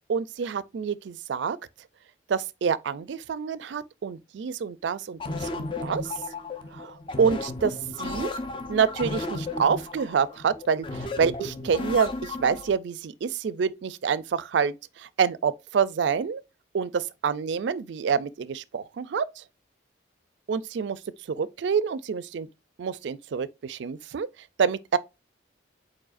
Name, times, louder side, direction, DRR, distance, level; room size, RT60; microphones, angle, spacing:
voice 1, 0.1-1.6 2.3-6.0 6.7-8.3 8.7-16.4 16.7-19.2 20.5-21.0 21.4-22.5 22.8-24.3 24.6-25.0, right 6 dB, 70° right, 0.4 m, -27 dB
sound 1, 5.2-12.7, left 2 dB, 25° left, 0.5 m, -34 dB
4.7 x 4.4 x 2.5 m
head